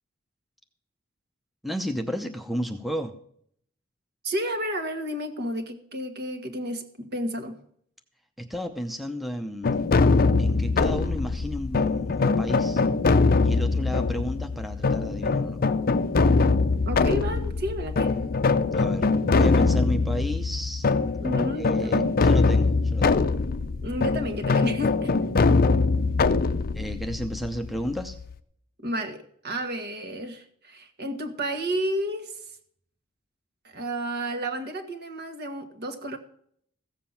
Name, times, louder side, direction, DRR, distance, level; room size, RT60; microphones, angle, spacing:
voice 1, 1.6-3.1 8.4-9.9 10.4-12.8 13.4-15.6 18.7-20.9 21.6-23.3 26.7-28.2, equal, ahead, 5 dB, 0.7 m, -33 dB
voice 2, 4.2-7.6 16.8-18.1 21.2-22.3 23.8-25.1 28.8-32.4 33.6-36.2, equal, 50° right, 6 dB, 1.6 m, -31 dB
sound 1, 9.6-28.3, left 3 dB, 45° left, 0.6 m, -23 dB
15.5 x 7.5 x 5.8 m, 0.66 s
head